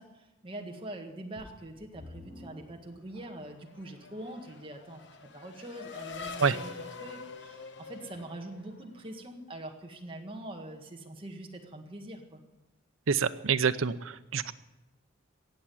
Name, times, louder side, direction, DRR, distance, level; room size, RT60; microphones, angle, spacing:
voice 1, 0.0-5.0 5.3-12.4, right 1 dB, 25° right, 2 dB, 1.7 m, -44 dB
sound 1, 1.4-3.8 4.4-4.5 5.1-5.2, left 1 dB, 25° left, 5.7 m, -51 dB
Race car auto racing / Accelerating revving vroom, 3.2-9.3, left 5 dB, 60° left, 1.1 m, -45 dB
voice 2, 13.1-14.5, right 6 dB, 85° right, 13 dB, 0.7 m, -27 dB
17.0 x 7.5 x 10.0 m, 1.0 s
head